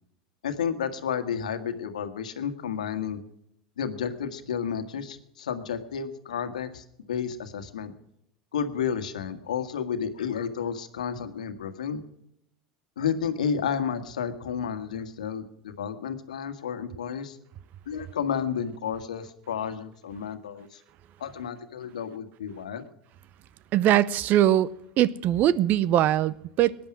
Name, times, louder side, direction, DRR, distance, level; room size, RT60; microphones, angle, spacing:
voice 1, 0.4-3.2 3.8-7.9 8.5-12.0 13.0-17.4 17.8-20.8 21.2-22.8, left 7 dB, 80° left, 1.6 m, -31 dB
voice 2, 23.7-24.7 25.0-26.8, right 12 dB, 50° right, 0.7 m, -21 dB
18.5 x 10.5 x 6.1 m
hypercardioid pair, 85°, 4 cm